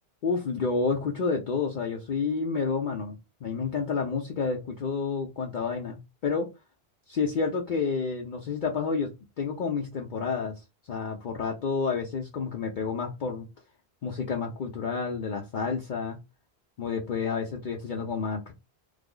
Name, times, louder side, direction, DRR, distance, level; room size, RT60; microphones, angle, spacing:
voice 1, 0.2-6.5 7.1-10.6 10.9-13.5 14.0-16.2 16.8-18.5, left 5 dB, 55° left, 0.7 m, -30 dB
3.3 x 2.0 x 3.6 m
omnidirectional pair, 1.1 m